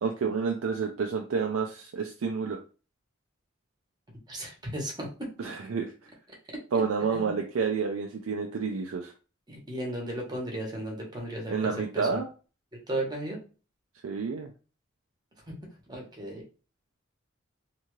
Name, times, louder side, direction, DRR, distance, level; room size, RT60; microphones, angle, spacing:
voice 1, 0.0-2.6 5.4-5.9 6.7-9.1 11.5-12.3 14.0-14.5, right 5 dB, 85° right, 3 dB, 0.4 m, -29 dB
voice 2, 4.3-5.3 7.1-7.3 9.5-12.2 12.7-13.4 15.5-15.6 15.9-16.4, right 1 dB, 20° right, -1 dB, 0.9 m, -35 dB
2.7 x 2.3 x 3.0 m, 0.36 s
head